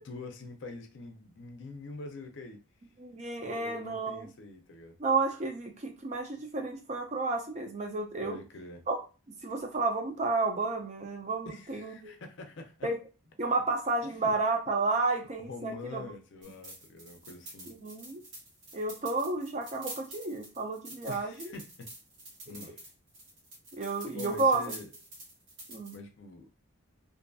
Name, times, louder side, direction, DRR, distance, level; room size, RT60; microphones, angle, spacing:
voice 1, 0.0-2.6 3.4-5.0 8.2-8.9 11.5-12.9 14.1-14.3 15.4-17.7 21.1-21.9 22.4-22.9 24.1-24.9 25.9-26.5, left 3 dB, 60° left, 5 dB, 0.5 m, -45 dB
voice 2, 3.0-4.3 5.0-8.4 8.9-9.0 9.4-12.2 12.8-13.0 13.4-16.0 17.7-18.2 18.7-21.5 23.7-24.6 25.7-25.9, right 3 dB, 35° right, 3 dB, 0.5 m, -31 dB
sound 1, 16.4-26.0, right 1 dB, 55° right, 1.0 m, -47 dB
2.5 x 2.5 x 2.3 m, 0.32 s
head